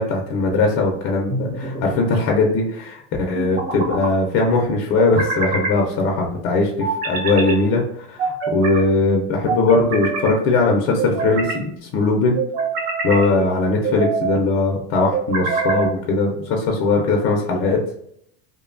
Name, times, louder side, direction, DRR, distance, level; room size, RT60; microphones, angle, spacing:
voice 1, 0.0-12.4 13.0-17.8, left 3 dB, 45° left, 0 dB, 0.5 m, -20 dB
sound 1, 1.3-2.0 3.3-4.1 5.0-5.8 6.8-7.6 8.2-8.8 9.5-10.3 11.0-11.6 12.4-13.3 13.8-14.4 15.1-15.9, right 4 dB, 85° right, 1.0 m, -25 dB
2.7 x 2.2 x 2.4 m, 0.69 s
supercardioid pair, 150°, 31 cm